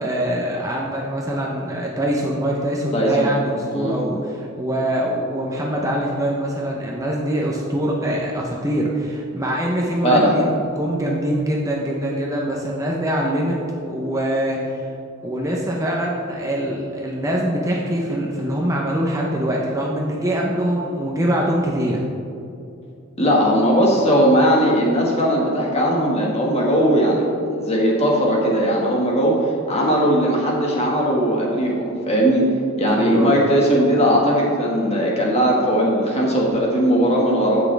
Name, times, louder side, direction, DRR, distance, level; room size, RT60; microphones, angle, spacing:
voice 1, 0.0-13.6 13.9-14.8 15.2-22.0 32.9-33.4, right 1 dB, 15° right, -2 dB, 0.8 m, -23 dB
voice 2, 2.9-3.3 3.7-3.9 10.0-10.3 23.2-32.4 32.8-37.6, equal, 30° left, -3 dB, 1.8 m, -18 dB
16.0 x 6.2 x 3.4 m, 2.7 s
head